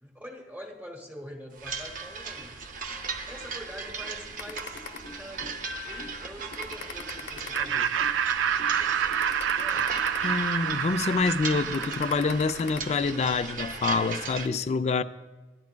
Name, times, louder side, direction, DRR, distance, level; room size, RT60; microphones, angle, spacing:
voice 1, 0.0-2.6 3.3-8.1 8.5-10.1 11.4-11.9, equal, 10° right, 0.8 m, -45 dB
sound 1, 1.6-14.5, right 4 dB, 45° right, 0.6 m, -38 dB
sound 2, 4.4-5.6 6.0-6.1 6.5-8.2 8.6-8.7 9.1-10.8 11.2-11.4 11.7-12.8, left 4 dB, 85° left, 0.8 m, -40 dB
Laughter, 7.5-12.8, right 8 dB, 80° right, 0.3 m, -28 dB
voice 2, 10.2-15.0, left 4 dB, 35° left, 0.3 m, -26 dB
14.0 x 10.5 x 2.2 m
head